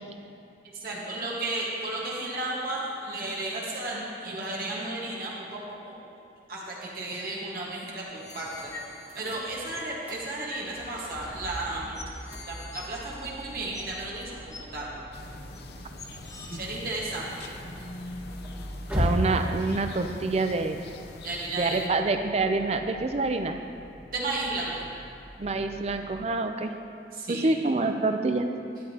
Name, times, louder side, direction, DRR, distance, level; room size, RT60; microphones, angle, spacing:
voice 1, 0.7-5.9 6.5-8.7 9.1-12.0 12.3-14.9 16.5-17.5 21.2-21.9 24.1-24.9 27.1-27.5, right 2 dB, 55° right, -5 dB, 1.5 m, -34 dB
sound 1, 8.1-9.9 10.5-10.7 11.5-11.6 12.0-14.1 14.5-14.6 15.5-15.6 16.0-16.6, left 4 dB, 20° left, 0.6 m, -45 dB
sound 2, 8.2-26.2, equal, 10° right, 1.4 m, -39 dB
sound 3, 15.1-21.9, left 2 dB, 60° left, 0.6 m, -44 dB
voice 2, 19.0-20.8 21.6-23.6 25.4-26.7 27.3-28.5, right 3 dB, 35° right, 7 dB, 0.5 m, -26 dB
12.0 x 10.0 x 2.9 m, 2.5 s
head